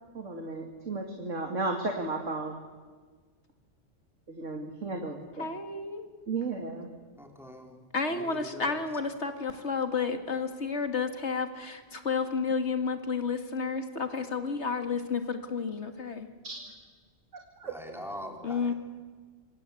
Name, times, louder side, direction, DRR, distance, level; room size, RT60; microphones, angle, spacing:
voice 1, 0.0-2.6 4.3-5.5 6.3-6.9 16.4-16.6 17.3-17.7, right 3 dB, 90° right, 3 dB, 2.7 m, -34 dB
voice 2, 5.4-6.1 7.9-16.3 18.4-18.7, left 5 dB, 65° left, 7 dB, 2.4 m, -31 dB
voice 3, 7.2-7.8 8.1-8.7 17.6-18.7, equal, ahead, 2 dB, 3.7 m, -43 dB
27.0 x 25.0 x 8.5 m, 1.4 s
omnidirectional pair, 1.3 m